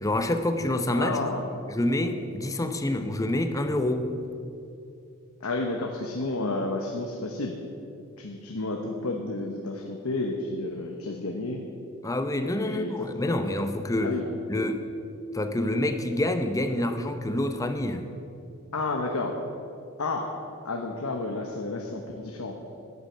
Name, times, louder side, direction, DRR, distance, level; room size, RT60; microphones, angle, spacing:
voice 1, 0.0-1.2 1.7-4.1 12.0-14.2 14.5-14.8 15.3-18.1, left 1 dB, 15° left, 7 dB, 0.7 m, -27 dB
voice 2, 1.0-1.5 5.4-7.6 8.2-11.6 12.6-13.4 14.0-14.3 18.7-19.4 20.0-20.3 20.6-22.6, left 2 dB, 85° left, 2 dB, 1.0 m, -31 dB
9.9 x 9.4 x 7.3 m, 2.6 s
head